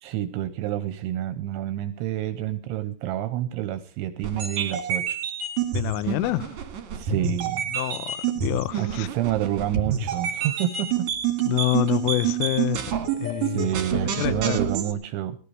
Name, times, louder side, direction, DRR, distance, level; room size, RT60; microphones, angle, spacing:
voice 1, 0.0-5.2 6.9-7.6 8.8-11.1 13.4-15.4, right 12 dB, 80° right, 2.9 m, -28 dB
sound 1, 4.2-14.9, right 7 dB, 55° right, 2.3 m, -28 dB
voice 2, 5.7-6.5 7.7-9.1 11.5-12.8 13.2-14.6, left 16 dB, 80° left, 3.3 m, -27 dB
20.5 x 15.5 x 3.3 m
omnidirectional pair, 6.0 m